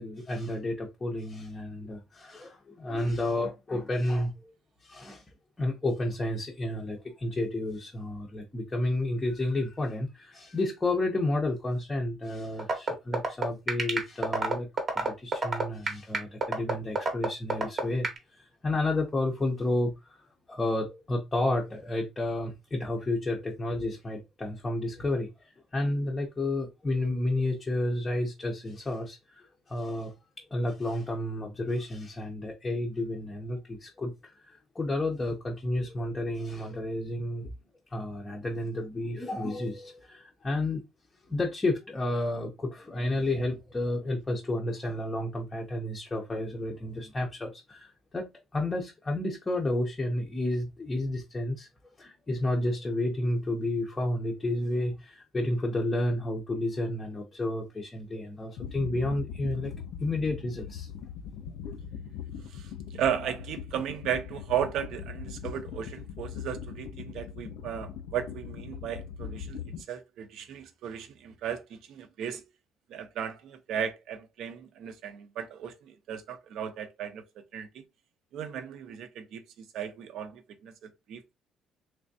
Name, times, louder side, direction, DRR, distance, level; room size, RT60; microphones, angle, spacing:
voice 1, 0.0-4.5 4.8-5.2 5.6-20.2 20.5-30.1 30.5-37.5 37.9-40.8 41.3-48.3 48.5-51.7 52.0-59.7 60.0-60.9 61.7-61.8, left 1 dB, 15° left, 0.5 m, -31 dB
sound 1, 12.6-18.2, right 3 dB, 30° right, 0.8 m, -26 dB
sound 2, 58.6-69.8, left 8 dB, 85° left, 0.4 m, -40 dB
voice 2, 62.5-72.4 72.9-77.2 77.5-77.8 78.3-81.3, right 9 dB, 65° right, 0.6 m, -35 dB
3.3 x 3.2 x 2.6 m
cardioid pair, 175°, 0 cm